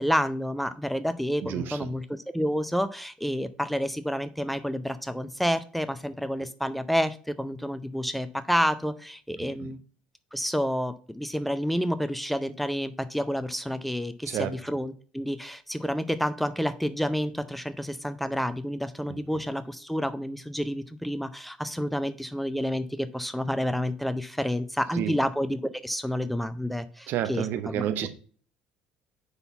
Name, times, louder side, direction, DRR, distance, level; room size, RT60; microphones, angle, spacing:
voice 1, 0.0-9.8 10.3-28.1, equal, ahead, 11 dB, 0.5 m, -29 dB
voice 2, 1.4-1.9 9.4-9.7 14.2-14.6 19.1-19.2 24.9-25.2 27.1-28.1, right 11 dB, 55° right, 8 dB, 0.9 m, -31 dB
5.7 x 4.0 x 5.4 m, 0.42 s
figure-of-eight pair, 60°, 4 cm